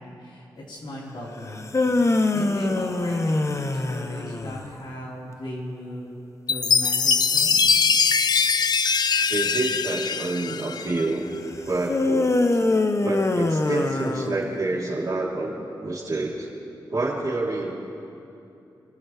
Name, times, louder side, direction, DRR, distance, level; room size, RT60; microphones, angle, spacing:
voice 1, 0.0-1.7 2.3-6.1 6.5-7.8, equal, 75° left, -5 dB, 4.6 m, -37 dB
sound 1, 1.5-4.7 11.9-14.8, left 2 dB, 35° left, 0.9 m, -24 dB
Chime, 6.5-11.1, left 5 dB, 55° left, 0.4 m, -22 dB
voice 2, 9.3-11.3 11.6-12.3 13.0-16.5 16.9-17.7, right 2 dB, 45° right, -4 dB, 3.6 m, -27 dB
26.5 x 14.5 x 3.5 m, 2.7 s
cardioid pair, 65°, 8 cm